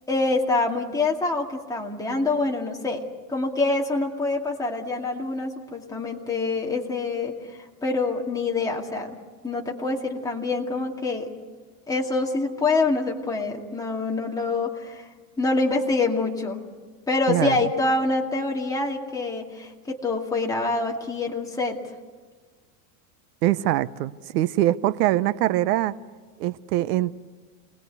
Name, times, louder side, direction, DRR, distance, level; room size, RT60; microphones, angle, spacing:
voice 1, 0.1-9.1 9.4-11.3 11.9-15.0 15.4-16.6 17.1-21.8, left 3 dB, 10° left, -1 dB, 2.3 m, -26 dB
voice 2, 17.3-17.6 23.4-25.9 26.4-27.1, right 14 dB, 85° right, 16 dB, 0.9 m, -23 dB
27.5 x 20.5 x 8.2 m, 1.4 s
supercardioid pair, 160°, 46 cm